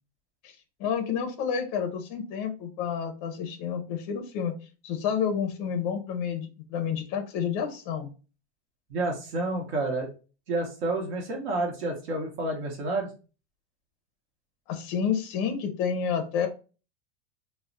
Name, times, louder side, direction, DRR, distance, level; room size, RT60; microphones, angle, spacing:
voice 1, 0.4-4.5 4.8-8.1 14.7-16.5, left 7 dB, 35° left, 6 dB, 0.4 m, -30 dB
voice 2, 8.9-10.1 10.5-13.1, right 2 dB, 70° right, 0 dB, 0.9 m, -29 dB
2.2 x 2.0 x 3.8 m, 0.34 s
supercardioid pair, 160°, 33 cm